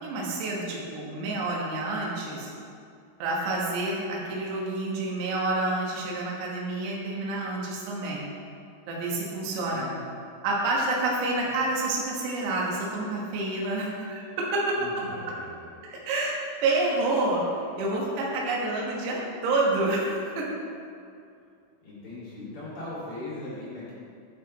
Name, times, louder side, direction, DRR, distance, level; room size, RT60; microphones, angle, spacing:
voice 1, 0.0-2.5 3.2-8.3 8.9-9.8 10.4-14.8 15.9-16.4 16.6-17.4 17.8-20.5, right 2 dB, 70° right, -3 dB, 3.2 m, -28 dB
voice 2, 9.7-10.1 11.3-11.5 14.8-15.7 21.8-23.9, left 2 dB, 40° left, -9 dB, 2.3 m, -39 dB
10.0 x 6.1 x 4.1 m, 2.4 s
omnidirectional pair, 5.7 m